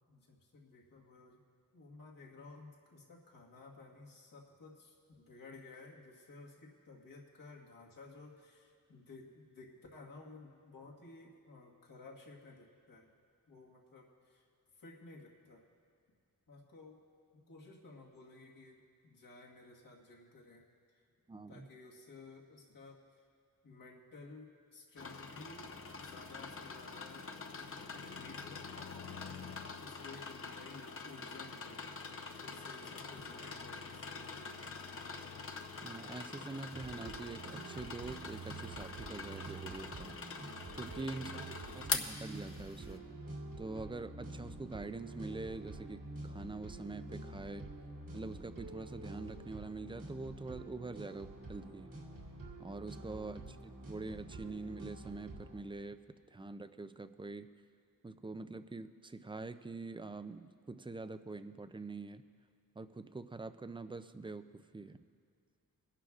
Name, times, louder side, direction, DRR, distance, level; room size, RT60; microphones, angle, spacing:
voice 1, 0.1-1.4 1.7-13.1 13.5-14.4 14.8-15.6 16.5-17.0 17.5-20.6 21.5-23.0 23.6-27.3 27.5-29.5 29.8-31.8 32.4-35.0 41.1-41.9 53.2-53.4, left 3 dB, 75° left, -2 dB, 1.6 m, -55 dB
voice 2, 21.3-21.7 35.8-40.4 40.7-43.0 43.6-47.7 48.1-51.9 52.6-56.0 56.3-57.5 58.0-62.2 62.8-65.0, right 3 dB, 15° right, 11 dB, 0.3 m, -45 dB
sound 1, 25.0-42.9, left 4 dB, 40° left, 0.7 m, -45 dB
sound 2, 36.7-55.6, right 2 dB, 70° right, 2.2 m, -48 dB
22.5 x 11.5 x 2.4 m, 2.3 s
wide cardioid pair, 140°, 34 cm